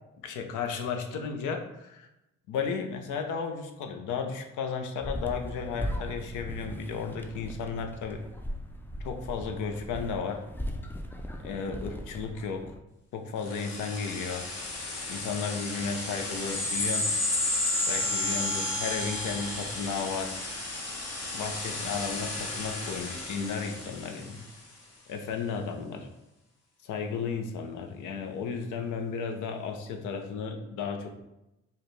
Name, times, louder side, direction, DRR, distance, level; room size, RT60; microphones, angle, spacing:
voice 1, 0.2-2.1 2.5-8.2 9.0-10.4 11.4-12.7 13.1-14.5 15.1-17.1 17.9-20.4 21.3-24.4 25.1-26.1 26.8-31.2, left 5 dB, 80° left, 5 dB, 0.6 m, -34 dB
sound 1, 5.0-12.8, equal, 5° left, 0.3 m, -38 dB
sound 2, 13.4-24.5, left 2 dB, 55° left, 1.3 m, -32 dB
4.6 x 2.2 x 3.2 m, 0.91 s
cardioid pair, 90°, 30 cm